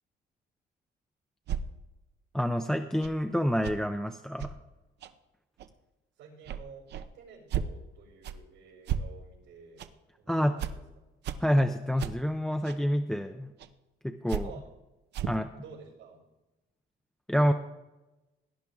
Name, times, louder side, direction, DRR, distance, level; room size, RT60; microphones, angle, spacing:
sound 1, 1.5-1.6 3.0-3.1 3.6-3.8 4.4-4.5 5.0-5.1 5.6-5.7 6.4-6.6 6.9-7.1 7.5-7.7 8.2-8.4 8.9-9.0 9.8-9.9 10.6-10.7 11.2-11.4 12.0-12.1 12.6-12.8 13.6-13.7 14.3-14.4 15.1-15.4, right 9 dB, 60° right, 0.7 m, -33 dB
voice 1, 2.3-4.5 10.3-10.5 11.4-13.5 14.0-14.5 15.3-15.5 17.3-17.5, equal, 5° left, 5 dB, 0.5 m, -27 dB
voice 2, 6.2-6.8 7.1-9.9 10.2-10.8 14.4-14.6 15.5-16.2, right 5 dB, 85° right, -6 dB, 5.1 m, -50 dB
17.5 x 10.5 x 3.5 m, 1.0 s
cardioid pair, 145°, 20 cm